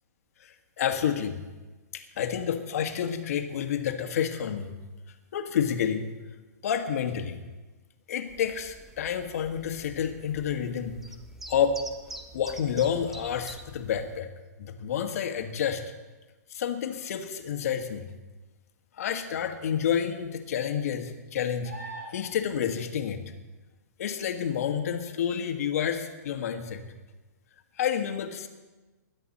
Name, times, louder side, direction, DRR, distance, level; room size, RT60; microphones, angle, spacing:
voice 1, 0.4-1.4 1.9-4.7 5.3-6.1 6.6-7.4 8.1-11.0 11.5-11.8 12.3-14.3 14.6-15.8 16.5-18.1 18.9-23.2 24.0-26.8 27.8-28.5, left 8 dB, 60° left, 7 dB, 1.5 m, -29 dB
sound 1, 8.3-14.2, right 1 dB, 5° right, 0.6 m, -46 dB
sound 2, 21.6-22.6 26.1-26.2, right 2 dB, 75° right, 3.2 m, -42 dB
21.0 x 10.5 x 4.2 m, 1.2 s
hypercardioid pair, 160°, 9 cm